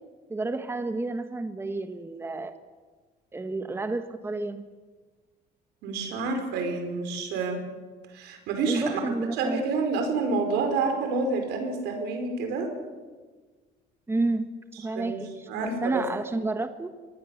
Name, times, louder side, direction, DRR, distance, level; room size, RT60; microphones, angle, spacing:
voice 1, 0.3-2.5 3.3-4.7 8.7-9.6 14.1-15.3 15.6-16.9, right 2 dB, 15° right, 9 dB, 1.2 m, -30 dB
voice 2, 5.8-7.7 8.1-12.7 14.9-15.2 15.5-16.0, right 4 dB, 85° right, 5 dB, 4.9 m, -28 dB
24.5 x 19.0 x 7.2 m, 1.4 s
cardioid pair, 110°, 17 cm